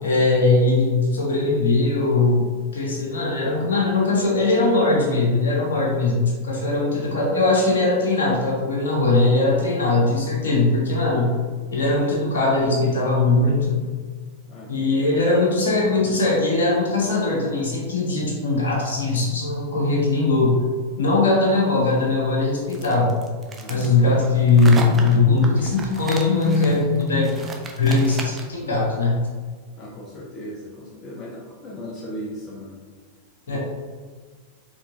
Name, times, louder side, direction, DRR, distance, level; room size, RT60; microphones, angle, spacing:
voice 1, 0.0-2.4 2.7-11.3 11.7-13.8 14.7-20.6 21.0-23.1 23.7-27.5 27.8-29.2 33.5-33.6, left 3 dB, 65° left, -4 dB, 1.3 m, -20 dB
voice 2, 14.5-15.6 23.6-24.3 29.8-32.8 33.5-33.6, equal, 30° left, -3 dB, 0.6 m, -38 dB
sound 1, 22.7-28.6, right 3 dB, 20° right, 0.6 m, -35 dB
4.5 x 3.6 x 2.7 m, 1.5 s
figure-of-eight pair, 90°, 0 cm